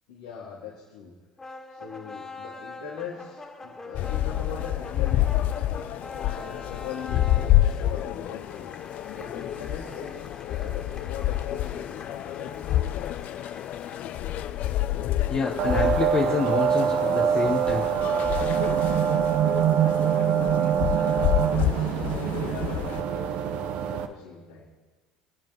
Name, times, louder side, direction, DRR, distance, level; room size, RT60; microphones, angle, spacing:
voice 1, 0.1-1.1 1.7-5.3 6.2-8.7 9.1-12.5 20.7-24.6, left 6 dB, 85° left, -8 dB, 2.9 m, -41 dB
sound 1, 1.4-15.6, left 3 dB, 20° left, 2.2 m, -44 dB
sound 2, 3.9-23.0, left 13 dB, 55° left, 0.6 m, -28 dB
voice 2, 15.3-17.9, left 5 dB, 35° left, 1 dB, 1.2 m, -27 dB
sound 3, 15.6-24.1, right 9 dB, 65° right, 1.0 m, -24 dB
26.5 x 9.1 x 3.2 m, 1.3 s
hypercardioid pair, 80°, 3 cm